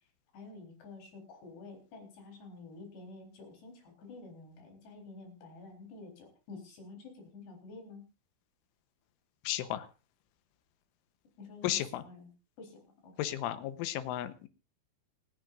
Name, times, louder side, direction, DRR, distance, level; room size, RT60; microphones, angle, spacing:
voice 1, 0.3-8.1 11.4-12.3 12.6-13.2, left 3 dB, 60° left, 2 dB, 6.0 m, -50 dB
voice 2, 9.4-9.9 11.6-12.0 13.2-14.5, left 13 dB, 85° left, 11 dB, 3.4 m, -34 dB
27.5 x 9.6 x 2.6 m, 0.31 s
omnidirectional pair, 5.7 m